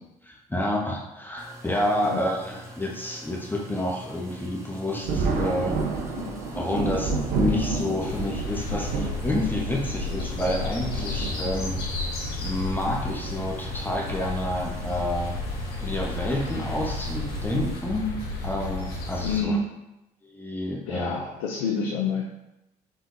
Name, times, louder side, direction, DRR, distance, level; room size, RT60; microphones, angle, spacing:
voice 1, 0.2-5.8 6.5-11.8 12.4-15.4 15.8-18.1 18.4-19.6 20.2-21.1, left 1 dB, 10° left, -2 dB, 1.0 m, -29 dB
sound 1, 1.4-17.8, equal, 15° right, 1.2 m, -45 dB
Thunder, 5.0-12.1 13.1-13.2 14.7-14.9 15.3-15.4 17.3-17.5 18.2-18.6, right 3 dB, 75° right, 0.8 m, -30 dB
voice 2, 6.2-6.5 19.2-19.7 20.9-22.2, left 4 dB, 85° left, -1 dB, 0.5 m, -28 dB
sound 2, 8.0-19.4, left 3 dB, 65° left, 1.1 m, -32 dB
5.0 x 3.7 x 2.6 m, 0.91 s
hypercardioid pair, 60°, 18 cm